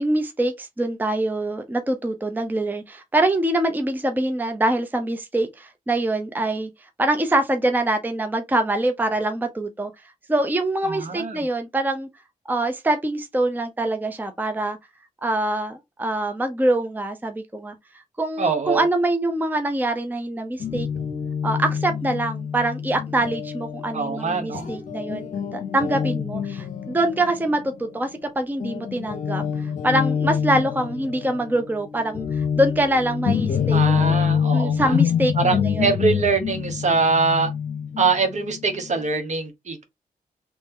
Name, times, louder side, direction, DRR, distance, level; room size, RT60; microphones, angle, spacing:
voice 1, 0.0-6.7 7.0-9.9 10.3-12.1 12.5-14.8 15.2-17.7 18.2-20.9 21.4-34.2 34.5-35.9, right 1 dB, 15° right, 0.6 m, -24 dB
voice 2, 10.8-11.4 18.4-18.8 23.9-24.7 33.7-35.0 35.4-37.5 38.0-39.8, right 4 dB, 55° right, 1.2 m, -23 dB
Guitar, 20.6-28.3 28.6-39.0, left 7 dB, 60° left, 0.7 m, -26 dB
3.2 x 2.7 x 3.6 m
cardioid pair, 80°, 14 cm